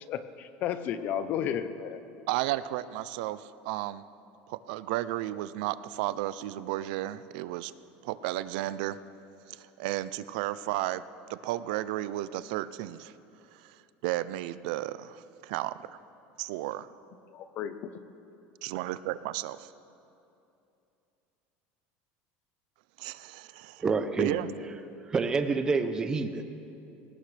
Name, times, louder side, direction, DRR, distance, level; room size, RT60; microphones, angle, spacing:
voice 1, 0.1-2.0 17.3-17.9, left 9 dB, 40° left, 12 dB, 0.7 m, -33 dB
voice 2, 2.3-4.1 4.5-7.7 8.0-9.0 9.6-11.0 11.3-13.1 13.6-13.7 14.0-15.7 16.4-16.9 18.6-19.7 23.0-23.8 24.2-24.5, right 15 dB, 70° right, 15 dB, 0.5 m, -33 dB
voice 3, 23.8-24.4 25.1-26.4, right 4 dB, 15° right, 9 dB, 0.7 m, -27 dB
22.5 x 18.5 x 3.3 m, 2.8 s
cardioid pair, 175°, 5 cm